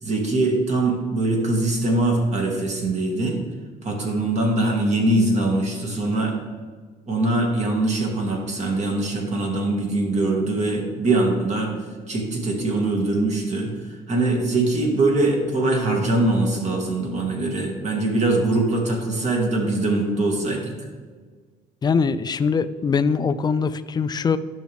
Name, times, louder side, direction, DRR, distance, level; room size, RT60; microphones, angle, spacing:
voice 1, 0.0-3.4 3.8-6.4 7.1-11.7 12.1-20.7, right 2 dB, 40° right, 1 dB, 1.9 m, -22 dB
voice 2, 21.8-24.4, left 5 dB, 25° left, 13 dB, 0.4 m, -22 dB
10.5 x 6.2 x 3.5 m, 1.5 s
cardioid pair, 110°, 17 cm